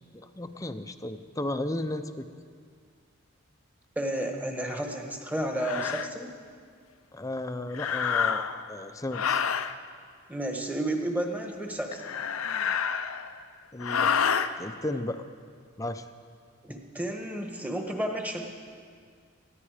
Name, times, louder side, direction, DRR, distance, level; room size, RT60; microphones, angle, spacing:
voice 1, 0.1-2.3 7.1-9.4 13.7-14.1 14.6-15.2 15.8-16.1, left 1 dB, 15° left, 9 dB, 0.6 m, -34 dB
voice 2, 3.9-6.3 10.3-12.2 16.6-18.5, right 1 dB, 5° right, 3 dB, 1.3 m, -32 dB
sound 1, 4.7-4.8 5.6-6.1 7.7-8.7 9.1-9.7 11.9-13.4 13.8-14.5, left 7 dB, 90° left, 0.6 m, -28 dB
20.0 x 14.5 x 5.0 m, 2.1 s
head